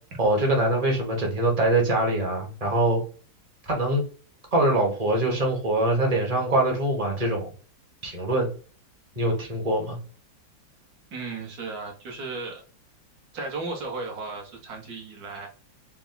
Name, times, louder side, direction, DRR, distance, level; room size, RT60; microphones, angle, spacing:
voice 1, 0.2-3.0 3.7-4.0 4.5-7.5 8.0-8.5 9.2-10.0, right 1 dB, 25° right, -1 dB, 1.0 m, -23 dB
voice 2, 11.1-12.6 13.3-15.5, right 3 dB, 55° right, 1 dB, 1.4 m, -35 dB
4.4 x 2.2 x 3.8 m, 0.39 s
omnidirectional pair, 2.1 m